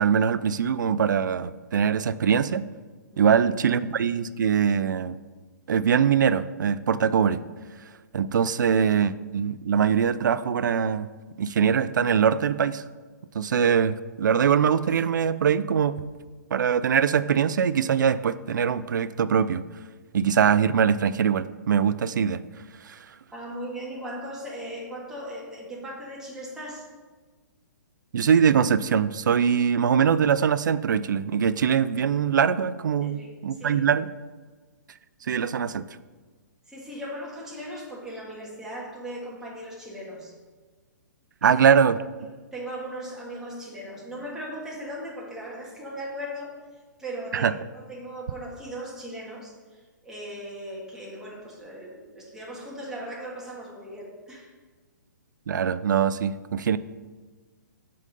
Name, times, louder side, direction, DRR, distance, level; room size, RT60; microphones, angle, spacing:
voice 1, 0.0-2.7 3.2-5.2 5.7-7.4 8.1-11.1 11.4-12.8 13.3-16.0 16.5-19.6 20.1-22.4 22.8-23.0 28.1-34.1 35.2-35.8 41.4-42.0 47.3-47.5 55.5-56.8, right 7 dB, 75° right, 15 dB, 0.4 m, -22 dB
voice 2, 23.3-26.8 33.0-33.8 36.7-40.3 41.4-41.6 42.2-42.3 42.5-46.5 47.0-47.6 47.9-54.5, equal, 5° right, -5 dB, 1.6 m, -38 dB
7.4 x 3.8 x 5.3 m, 1.4 s
hypercardioid pair, 145°, 10 cm